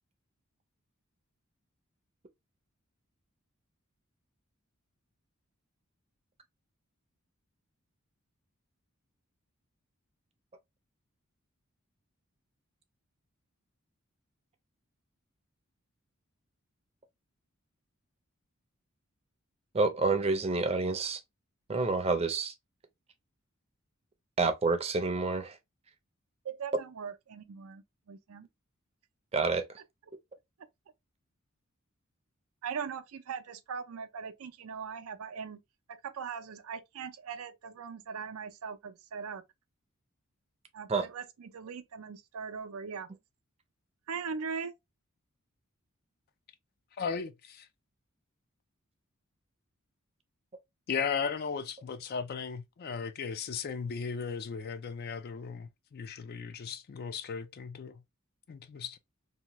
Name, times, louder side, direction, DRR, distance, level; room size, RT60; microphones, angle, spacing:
voice 1, 19.7-21.2 21.7-22.5 24.4-25.5 29.3-29.6 40.9-41.1, right 3 dB, 30° right, 0.5 m, -28 dB
voice 2, 26.4-28.5 32.6-35.6 35.9-39.4 40.7-43.1 44.1-44.7, right 6 dB, 85° right, 0.5 m, -40 dB
voice 3, 47.0-47.7 50.9-58.0 58.5-59.0, left 6 dB, 45° left, 0.4 m, -36 dB
2.8 x 2.2 x 2.9 m
head